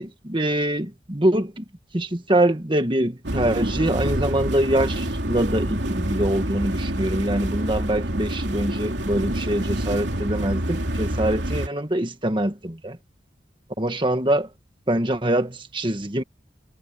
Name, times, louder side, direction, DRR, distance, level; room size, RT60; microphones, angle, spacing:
voice 1, 0.0-1.6 1.9-13.0 13.8-14.5 14.9-16.2, right 1 dB, 25° right, 1.6 m, -24 dB
sound 1, 3.2-11.7, right 1 dB, 75° right, 3.0 m, -27 dB
head